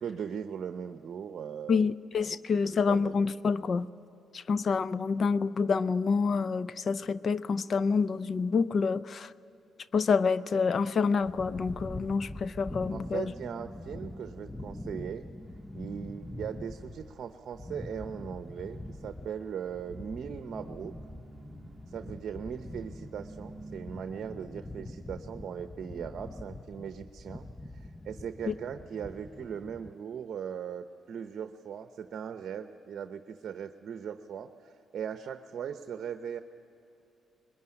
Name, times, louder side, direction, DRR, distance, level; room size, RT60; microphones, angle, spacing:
voice 1, 0.0-1.9 2.3-3.1 12.9-15.3 15.7-20.9 21.9-27.5 27.7-36.4, right 8 dB, 60° right, 0.8 m, -39 dB
voice 2, 1.7-3.9 4.3-9.3 9.9-13.2 28.5-28.6, left 5 dB, 50° left, 0.6 m, -27 dB
sound 1, 11.2-29.9, left 1 dB, 10° left, 0.7 m, -44 dB
sound 2, 15.4-24.0, right 2 dB, 25° right, 1.5 m, -52 dB
22.0 x 20.0 x 9.9 m
cardioid pair, 90°, 0 cm